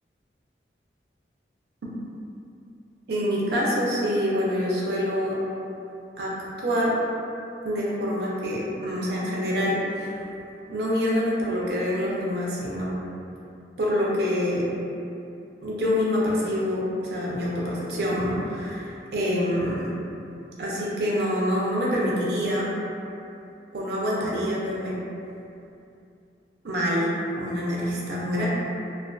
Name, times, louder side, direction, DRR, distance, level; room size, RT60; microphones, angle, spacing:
voice 1, 3.1-5.4 6.2-6.3 6.6-6.9 7.6-10.2 10.7-12.9 13.8-14.7 15.6-16.8 17.1-19.9 20.6-22.7 23.7-25.0 26.6-27.1 27.4-28.5, equal, 60° right, -5 dB, 0.4 m, -26 dB
2.4 x 2.3 x 2.2 m, 2.7 s
head